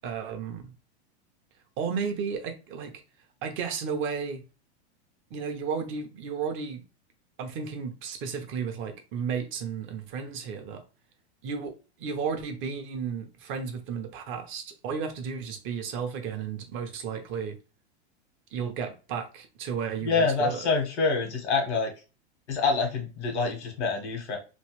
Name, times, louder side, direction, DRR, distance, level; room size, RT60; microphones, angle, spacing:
voice 1, 0.0-0.7 1.8-3.0 3.4-4.4 5.3-6.8 7.4-10.8 11.4-11.7 12.0-17.6 18.5-20.6, right 6 dB, 35° right, 0.8 m, -33 dB
voice 2, 20.0-21.9 22.5-24.4, left 4 dB, 85° left, 1.4 m, -26 dB
3.1 x 2.6 x 3.0 m
hypercardioid pair, 125°, 33 cm